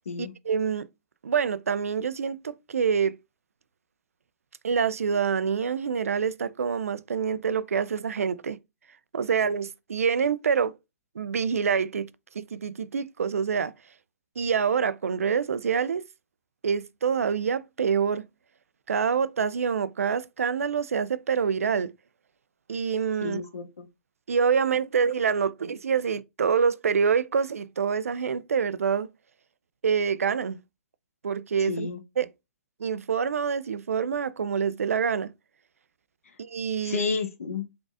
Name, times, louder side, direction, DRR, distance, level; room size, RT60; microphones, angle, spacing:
voice 1, 0.2-0.9 1.2-3.2 4.6-8.6 9.1-10.8 11.2-12.1 12.3-13.7 14.4-16.0 16.6-18.2 18.9-21.9 22.7-23.4 24.3-29.1 29.8-30.6 31.2-31.9 32.2-32.3 32.8-35.3 36.4-37.1, right 6 dB, 85° right, 0.4 m, -26 dB
voice 2, 23.2-23.9 31.7-32.0 36.8-37.7, left 5 dB, 80° left, 1.0 m, -31 dB
3.9 x 3.7 x 2.5 m
hypercardioid pair, 135°, 8 cm